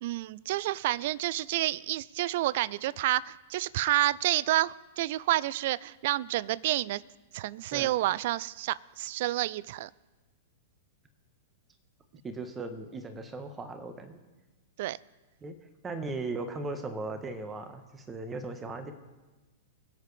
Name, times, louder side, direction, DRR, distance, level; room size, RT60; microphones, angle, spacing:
voice 1, 0.0-7.0 7.3-9.9 14.8-15.0, right 15 dB, 55° right, 21 dB, 0.4 m, -29 dB
voice 2, 12.2-14.2 15.4-15.5 15.8-18.9, right 3 dB, 20° right, 7 dB, 1.5 m, -37 dB
23.5 x 8.0 x 3.5 m, 1.2 s
figure-of-eight pair, 100°, 0 cm